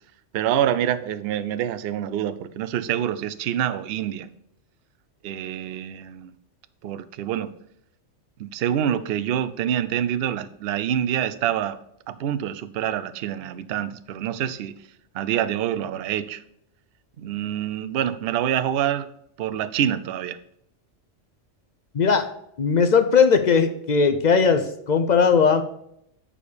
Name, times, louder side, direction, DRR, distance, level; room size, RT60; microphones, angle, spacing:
voice 1, 0.3-4.3 5.2-6.3 6.8-7.5 8.4-11.8 12.1-14.7 15.1-16.4 17.2-19.1 19.4-20.4, right 10 dB, 65° right, 12 dB, 0.7 m, -26 dB
voice 2, 21.9-22.3 22.6-25.6, left 5 dB, 55° left, 9 dB, 0.5 m, -18 dB
8.5 x 5.0 x 5.1 m, 0.75 s
omnidirectional pair, 1.3 m